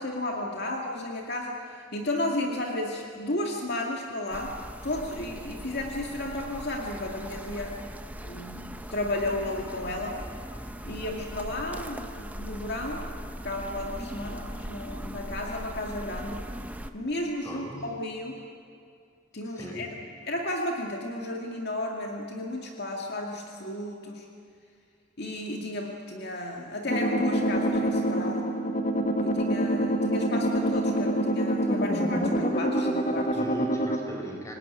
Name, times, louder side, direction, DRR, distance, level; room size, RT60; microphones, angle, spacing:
voice 1, 0.0-4.5 4.8-7.8 8.2-10.2 10.8-13.0 13.4-16.5 16.9-18.4 19.3-19.9 20.3-24.3 25.2-28.5 28.9-33.4, left 1 dB, 55° left, 0 dB, 2.2 m, -33 dB
sound 1, 4.3-16.9, equal, 10° right, 1.0 m, -40 dB
voice 2, 17.4-18.0 19.4-19.9 33.1-34.5, left 1 dB, 15° left, 1 dB, 4.9 m, -39 dB
sound 2, 26.9-34.0, equal, 40° left, 2.1 m, -26 dB
26.0 x 19.5 x 9.8 m, 2.3 s
head